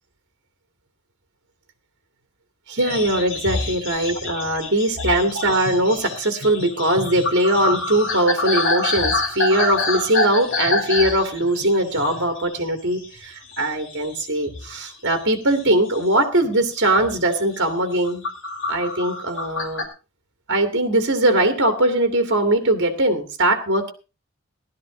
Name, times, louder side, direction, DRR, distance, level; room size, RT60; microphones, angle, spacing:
voice 1, 2.7-18.3 18.7-19.9 20.5-23.9, right 1 dB, 55° right, 6 dB, 2.2 m, -21 dB
sound 1, 2.8-13.2 13.5-14.2 14.5-16.0 16.4-16.6 17.0-17.2 17.7-19.8, left 3 dB, 60° left, 3.6 m, -27 dB
16.0 x 12.5 x 3.8 m, 0.31 s
head